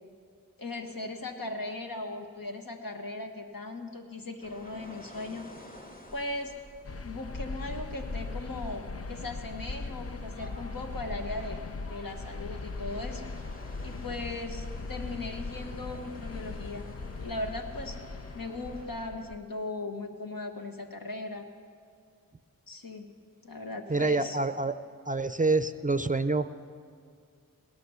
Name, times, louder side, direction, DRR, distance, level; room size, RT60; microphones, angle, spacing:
voice 1, 0.6-5.5 6.1-6.5 7.0-11.6 11.9-13.3 13.8-16.9 17.2-18.0 18.3-21.5 22.7-23.1 23.4-24.4, left 2 dB, 75° left, 3 dB, 1.5 m, -38 dB
sound 1, 4.4-18.9, left 1 dB, 25° left, 1.5 m, -51 dB
sound 2, 6.8-19.4, left 3 dB, 45° left, 0.5 m, -39 dB
voice 2, 23.9-24.7 25.1-26.5, right 3 dB, 25° right, 11 dB, 0.5 m, -27 dB
17.5 x 13.0 x 5.6 m, 2.3 s
wide cardioid pair, 70°, 35 cm